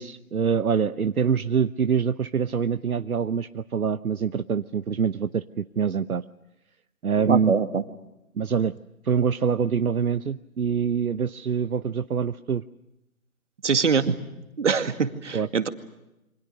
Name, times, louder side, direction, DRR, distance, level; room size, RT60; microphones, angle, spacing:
voice 1, 0.0-6.2 7.0-7.5 8.3-8.8 9.0-12.6 15.3-15.5, right 6 dB, 75° right, 12 dB, 1.0 m, -25 dB
voice 2, 7.2-7.8 13.6-14.2 14.6-15.7, right 5 dB, 55° right, 9 dB, 2.2 m, -23 dB
28.0 x 25.5 x 6.6 m, 0.93 s
figure-of-eight pair, 160°, 43 cm